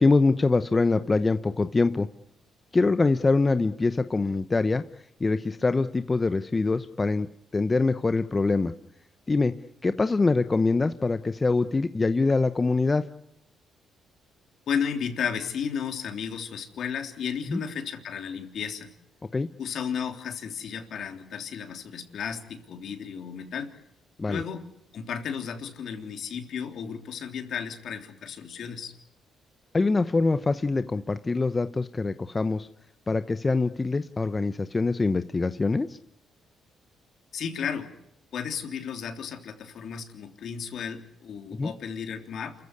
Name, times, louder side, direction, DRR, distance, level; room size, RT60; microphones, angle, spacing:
voice 1, 0.0-2.1 2.7-4.8 5.2-7.3 7.5-8.7 9.3-9.5 9.8-13.0 17.5-17.6 19.3-19.5 24.2-24.4 29.7-32.7 33.1-36.0 41.6-41.7, left 3 dB, 25° left, 11 dB, 0.9 m, -24 dB
voice 2, 14.7-18.9 19.6-23.7 24.3-24.6 24.9-28.9 37.3-37.9 38.3-42.5, left 7 dB, 65° left, 5 dB, 3.4 m, -33 dB
28.0 x 15.0 x 9.8 m, 0.79 s
cardioid pair, 90°, 0 cm